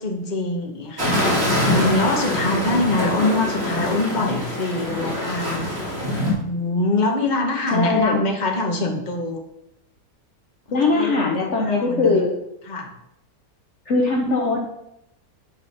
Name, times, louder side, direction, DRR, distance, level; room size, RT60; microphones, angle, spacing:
voice 1, 0.0-5.6 6.4-9.4 10.7-12.2 12.7-12.9, left 2 dB, 30° left, 2 dB, 1.2 m, -24 dB
sound 1, 1.0-6.3, left 1 dB, 40° right, 2.5 m, -24 dB
voice 2, 7.7-8.2 10.7-12.3 13.9-14.6, left 3 dB, 55° left, 0 dB, 1.1 m, -20 dB
9.5 x 4.2 x 5.5 m, 0.83 s
omnidirectional pair, 1.6 m